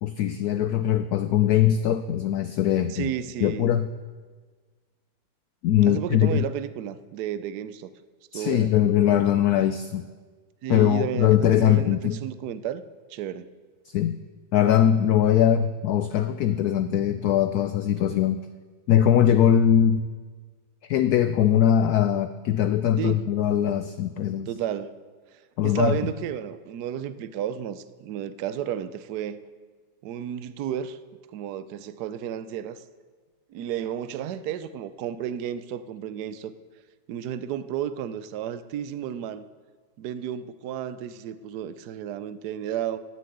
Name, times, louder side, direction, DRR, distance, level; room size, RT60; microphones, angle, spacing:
voice 1, 0.0-3.1 3.4-3.9 5.6-6.4 8.3-10.1 10.7-12.2 13.9-14.2 14.5-18.4 18.9-20.1 20.9-24.5 25.6-26.0, left 10 dB, 70° left, 11 dB, 0.9 m, -21 dB
voice 2, 2.9-3.7 5.9-7.9 8.3-8.7 10.6-12.8 13.1-13.5 23.0-23.3 24.5-24.9 25.3-29.4 30.0-31.0 31.3-32.8 33.5-36.5 37.1-39.5 40.0-43.0, right 10 dB, 65° right, 13 dB, 1.1 m, -32 dB
16.0 x 7.4 x 8.6 m, 1.5 s
omnidirectional pair, 2.1 m